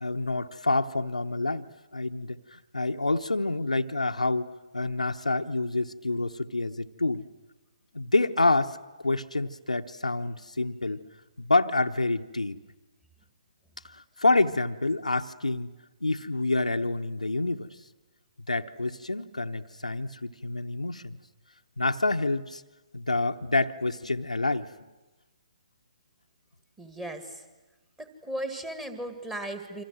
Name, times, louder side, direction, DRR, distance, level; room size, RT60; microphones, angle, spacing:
voice 1, 0.0-7.2 7.9-8.8 9.0-11.0 11.4-12.6 13.9-15.7 16.0-17.7 18.5-21.2 21.8-22.6 22.9-24.7, left 2 dB, 80° left, 6 dB, 1.0 m, -27 dB
voice 2, 26.8-27.4 28.0-29.8, right 1 dB, 5° right, 8 dB, 2.0 m, -36 dB
28.0 x 25.5 x 7.7 m, 1.1 s
figure-of-eight pair, 135°, 4 cm